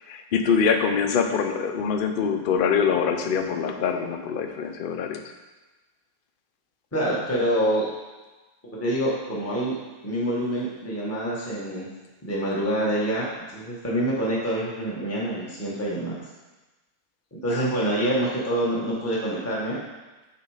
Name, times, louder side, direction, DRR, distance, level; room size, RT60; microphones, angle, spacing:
voice 1, 0.1-5.2 17.5-17.7 18.0-18.1, left 6 dB, 60° left, 6 dB, 0.5 m, -24 dB
voice 2, 6.9-7.8 8.8-9.8 10.0-11.9 12.2-13.3 13.5-16.2 17.3-19.8, right 1 dB, 10° left, -6 dB, 1.2 m, -26 dB
8.3 x 4.1 x 4.9 m, 1.2 s
omnidirectional pair, 1.6 m